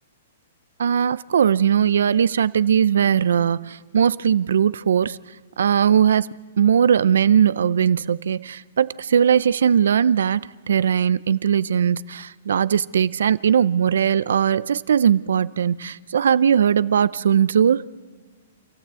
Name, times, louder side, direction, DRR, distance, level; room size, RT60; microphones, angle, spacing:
voice 1, 0.8-5.2 5.6-6.3 6.6-10.4 10.7-17.9, right 8 dB, 80° right, 0.7 m, -19 dB
27.5 x 14.5 x 8.3 m
hypercardioid pair, 150°, 0 cm